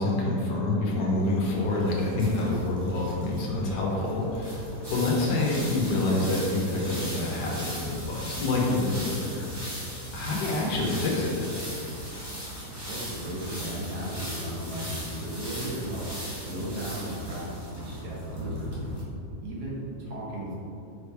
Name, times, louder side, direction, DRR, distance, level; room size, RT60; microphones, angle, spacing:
voice 1, 0.0-4.6 4.9-9.8 10.1-11.6, left 2 dB, 85° left, -3 dB, 1.6 m, -27 dB
sound 1, 1.2-19.0, equal, 15° right, 1.4 m, -38 dB
voice 2, 9.9-10.3 12.9-18.8 19.4-20.6, right 1 dB, 70° right, -6 dB, 2.0 m, -36 dB
5.2 x 5.0 x 4.8 m, 2.7 s
omnidirectional pair, 1.8 m